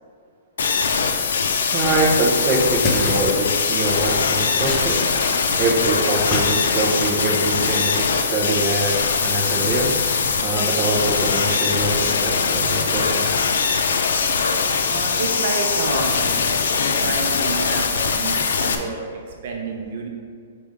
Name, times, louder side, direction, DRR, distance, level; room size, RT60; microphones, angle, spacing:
sound 1, 0.6-18.7, left 5 dB, 90° left, 0.6 m, -21 dB
voice 1, 1.7-5.1 5.6-10.0 10.4-13.4, right 2 dB, 25° right, -2 dB, 0.8 m, -23 dB
sound 2, 2.6-3.4 4.0-5.3 5.6-6.7 7.0-7.3, left 2 dB, 25° left, 0.9 m, -29 dB
voice 2, 14.9-16.4 16.9-20.1, right 4 dB, 55° right, 1 dB, 0.8 m, -29 dB
5.9 x 5.2 x 3.6 m, 2.1 s
hypercardioid pair, 165°, 0 cm